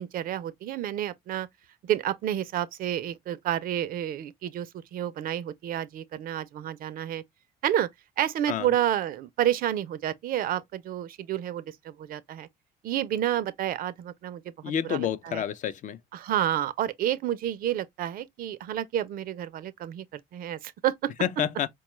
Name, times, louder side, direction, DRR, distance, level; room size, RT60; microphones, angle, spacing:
voice 1, 0.0-1.5 1.8-7.2 7.6-7.9 8.2-12.5 12.8-14.4 14.9-15.4 16.1-21.1, right 11 dB, 60° right, 0.4 m, -30 dB
voice 2, 14.6-16.0 21.2-21.7, left 9 dB, 50° left, 0.4 m, -29 dB
4.5 x 2.2 x 3.0 m
cardioid pair, 110°, 17 cm